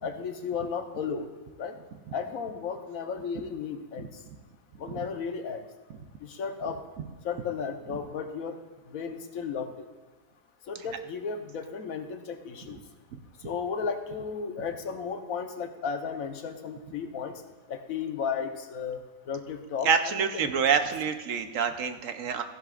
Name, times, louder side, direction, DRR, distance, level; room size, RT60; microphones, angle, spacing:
voice 1, 0.0-1.3 1.6-1.7 2.1-4.1 4.8-5.6 6.2-6.8 7.2-8.6 8.9-9.7 10.7-12.8 13.4-17.3 17.7-20.5, left 6 dB, 80° left, 6 dB, 1.3 m, -34 dB
voice 2, 19.8-22.4, right 6 dB, 70° right, 8 dB, 1.1 m, -26 dB
15.0 x 11.0 x 2.4 m, 1.3 s
omnidirectional pair, 1.5 m